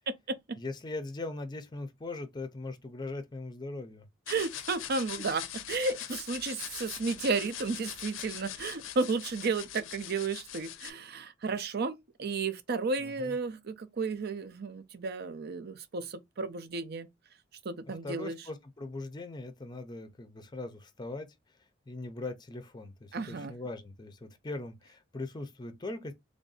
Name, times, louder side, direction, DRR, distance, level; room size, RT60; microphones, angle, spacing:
voice 1, 0.1-0.6 4.3-17.1 17.6-18.4 23.1-23.6, right 4 dB, 55° right, 0.5 m, -33 dB
voice 2, 0.6-4.0 13.0-13.3 18.0-21.3 21.9-26.1, left 2 dB, 20° left, 0.5 m, -40 dB
sound 1, 4.3-10.9, left 11 dB, 80° left, 0.5 m, -42 dB
3.4 x 2.6 x 3.9 m
head